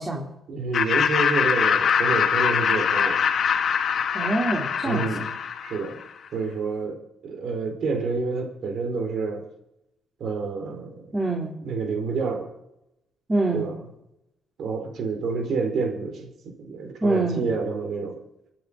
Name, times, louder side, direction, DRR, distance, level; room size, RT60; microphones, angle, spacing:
voice 1, 0.5-3.2 4.8-5.3 5.6-6.0 6.3-9.4 10.2-11.2 11.6-12.5 13.5-13.8 14.6-16.3 16.6-18.1, right 4 dB, 65° right, 5 dB, 4.5 m, -28 dB
Laughter, 0.7-6.0, left 7 dB, 60° left, 1.5 m, -23 dB
voice 2, 4.1-5.0 11.1-11.5 13.3-13.7 17.0-17.4, right 2 dB, 20° right, -2 dB, 3.9 m, -24 dB
24.5 x 9.3 x 5.2 m, 0.84 s
cardioid pair, 90°, 0 cm